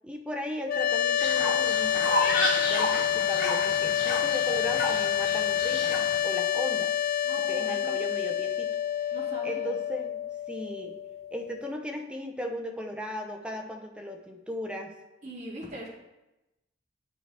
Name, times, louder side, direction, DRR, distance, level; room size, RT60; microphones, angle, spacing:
voice 1, 0.0-6.9 7.5-8.7 9.4-10.2 10.5-11.0 11.3-14.9, left 1 dB, 5° right, 3 dB, 0.6 m, -37 dB
sound 1, 0.7-11.8, left 10 dB, 45° left, 0.3 m, -28 dB
Fowl, 1.2-6.2, left 1 dB, 90° left, 2.6 m, -31 dB
voice 2, 7.2-8.0 9.1-9.7 15.2-15.9, equal, 35° right, -5 dB, 2.1 m, -41 dB
9.0 x 5.4 x 3.3 m, 0.97 s
head